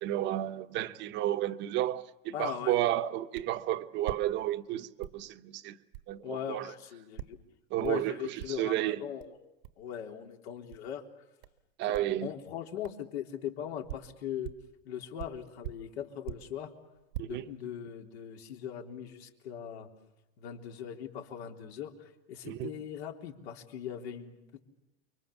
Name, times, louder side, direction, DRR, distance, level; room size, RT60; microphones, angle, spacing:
voice 1, 0.0-5.8 6.1-6.7 7.7-9.0 11.8-12.3 17.2-17.4 22.4-22.7, right 13 dB, 35° right, 1.0 m, -32 dB
voice 2, 2.3-2.7 6.2-7.4 7.8-9.4 9.8-11.0 11.9-14.5 14.8-16.7 17.2-19.9 20.4-21.9 22.3-24.6, left 9 dB, 75° left, 3.8 m, -40 dB
sound 1, 3.3-3.6 4.0-4.7 5.0-5.3 5.9-6.1 7.2-7.4 7.8-8.1 8.4-8.8 9.2-9.3 9.6-9.8 10.7-10.9 11.4-11.6 11.9-12.2 12.8-13.0 13.6-14.7 15.2-16.6 16.9-17.2, right 13 dB, 75° right, 1.4 m, -43 dB
30.0 x 23.5 x 7.2 m
supercardioid pair, 150°, 32 cm